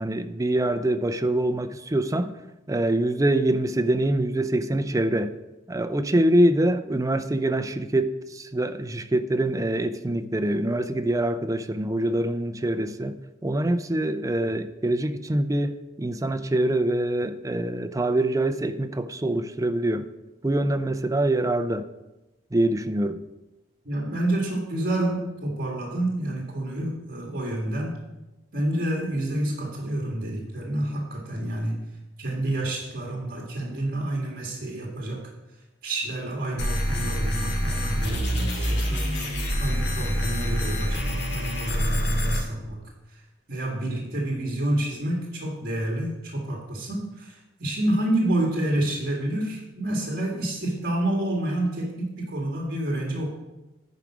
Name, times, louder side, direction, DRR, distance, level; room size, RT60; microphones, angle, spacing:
voice 1, 0.0-2.4 2.7-5.3 5.7-13.2 13.4-20.1 20.4-21.9 22.5-23.2, right 1 dB, 20° right, 0.5 m, -24 dB
voice 2, 23.9-28.0 28.5-31.8 32.2-35.3 35.8-39.1 39.6-42.8 43.5-53.3, right 1 dB, 55° right, 1.9 m, -28 dB
sound 1, 36.6-42.4, equal, 70° left, 2.4 m, -26 dB
10.5 x 4.8 x 6.1 m
head